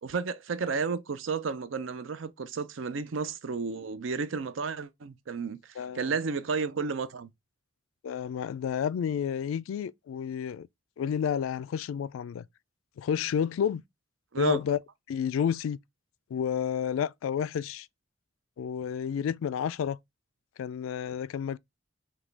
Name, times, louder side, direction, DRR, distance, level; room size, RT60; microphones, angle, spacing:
voice 1, 0.0-7.3 14.3-14.6, right 5 dB, 70° right, 0.5 m, -32 dB
voice 2, 5.8-6.1 8.0-10.7 11.0-12.4 13.0-13.8 14.4-14.8 15.1-15.8 16.3-17.9 18.6-20.0 20.6-21.6, left 8 dB, 80° left, 0.3 m, -30 dB
6.0 x 2.3 x 3.3 m
head